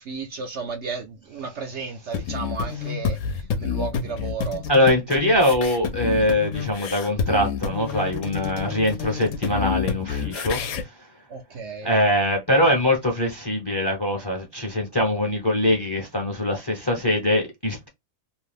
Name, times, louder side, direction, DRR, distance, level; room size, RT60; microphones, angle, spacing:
voice 1, 0.0-3.2 3.6-4.6 11.3-11.9, right 5 dB, 65° right, 0.8 m, -33 dB
sound 1, 2.1-10.8, left 7 dB, 70° left, 0.9 m, -29 dB
voice 2, 4.7-11.1 11.8-17.9, left 1 dB, 20° left, 0.7 m, -22 dB
2.7 x 2.3 x 3.3 m
omnidirectional pair, 1.5 m